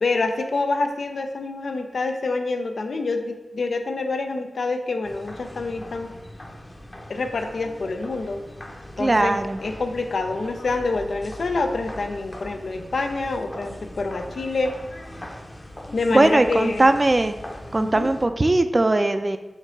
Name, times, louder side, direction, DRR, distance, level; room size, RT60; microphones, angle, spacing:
voice 1, 0.0-6.1 7.1-8.4 9.0-14.7 15.9-16.9 17.8-18.1, left 3 dB, 80° left, 5 dB, 0.5 m, -26 dB
sound 1, 5.0-18.3, left 1 dB, 25° left, 0.7 m, -40 dB
voice 2, 9.0-9.6 16.1-17.3 17.7-19.4, right 2 dB, 30° right, 9 dB, 0.4 m, -19 dB
5.3 x 3.8 x 5.1 m, 1.1 s
wide cardioid pair, 95°, 0 cm